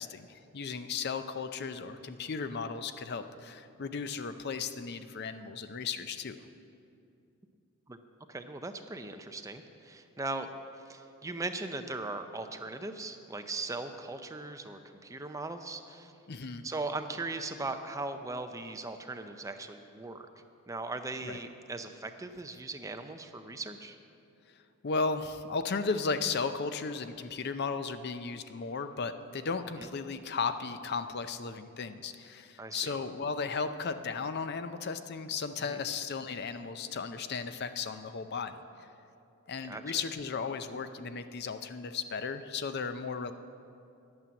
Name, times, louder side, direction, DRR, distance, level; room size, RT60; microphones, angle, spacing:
voice 1, 0.0-6.4 16.3-16.6 21.2-21.4 24.8-38.9 39.5-43.3, left 5 dB, 45° left, 10 dB, 0.5 m, -35 dB
voice 2, 8.3-10.5 10.9-16.1 16.6-20.3 20.7-24.0 29.8-29.9 32.6-32.9 35.7-35.8 39.7-39.8, right 3 dB, 15° right, 7 dB, 0.5 m, -39 dB
10.5 x 8.8 x 7.0 m, 2.6 s
head